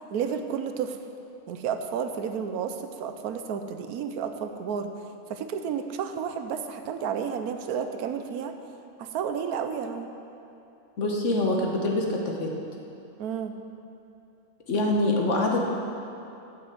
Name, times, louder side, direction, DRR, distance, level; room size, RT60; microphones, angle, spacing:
voice 1, 0.1-1.0 1.5-4.9 5.3-8.5 9.0-10.1 13.2-13.5, right 7 dB, 85° right, 7 dB, 1.2 m, -31 dB
voice 2, 11.0-12.5 14.7-15.7, left 2 dB, 55° left, 0 dB, 1.6 m, -25 dB
9.3 x 7.7 x 7.8 m, 2.8 s
omnidirectional pair, 1.6 m